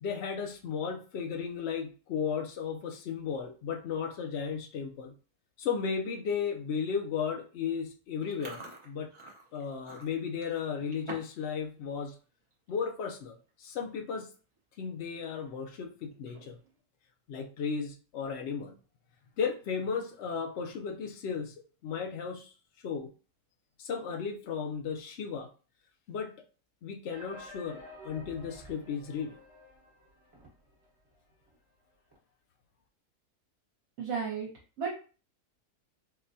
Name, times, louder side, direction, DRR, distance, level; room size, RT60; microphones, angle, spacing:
voice 1, 0.0-5.1 5.6-9.1 9.5-12.2 12.7-14.3 14.8-16.6 17.3-18.7 19.4-21.5 21.8-22.5 22.8-23.1 23.8-25.5 26.1-26.3 26.8-29.4, left 6 dB, 70° left, 3 dB, 0.6 m, -35 dB
Chewing mastication, 8.2-11.5 11.8-12.1 12.5-12.7 13.5-13.6 13.8-14.2 14.6-14.7 16.1-16.7, right 2 dB, 35° right, 0.5 m, -47 dB
sound 1, 27.1-30.9 31.1-31.2 31.5-31.6 32.1-32.2, equal, 15° right, 1.0 m, -50 dB
voice 2, 34.0-34.5 34.8-34.9, right 6 dB, 65° right, -5 dB, 1.2 m, -33 dB
4.0 x 2.2 x 2.6 m, 0.37 s
omnidirectional pair, 1.7 m